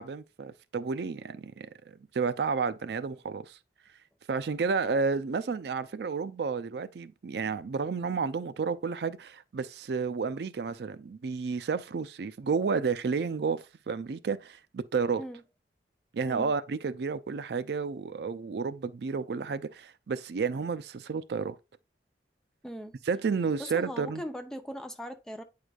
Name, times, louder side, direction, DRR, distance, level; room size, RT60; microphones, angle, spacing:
voice 1, 0.0-1.7 2.1-3.6 4.3-15.2 16.1-21.6 23.1-24.2, right 5 dB, 65° right, 0.4 m, -31 dB
voice 2, 22.6-23.0 23.6-25.4, equal, 5° left, 0.5 m, -40 dB
8.9 x 4.8 x 2.4 m
head